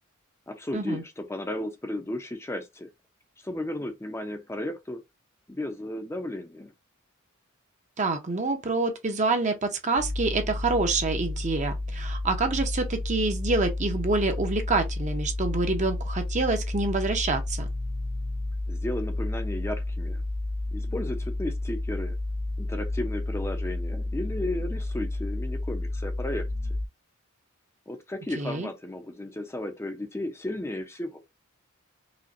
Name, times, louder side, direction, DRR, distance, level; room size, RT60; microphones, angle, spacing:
voice 1, 0.5-2.9 3.4-5.0 5.5-6.7 18.7-20.2 20.7-22.1 22.6-26.5 27.9-31.2, left 1 dB, 10° left, 0.5 m, -34 dB
voice 2, 8.0-17.7 28.4-28.7, right 3 dB, 35° right, 0.7 m, -27 dB
sound 1, 10.0-26.9, left 2 dB, 65° left, 0.7 m, -31 dB
5.0 x 2.2 x 2.6 m
head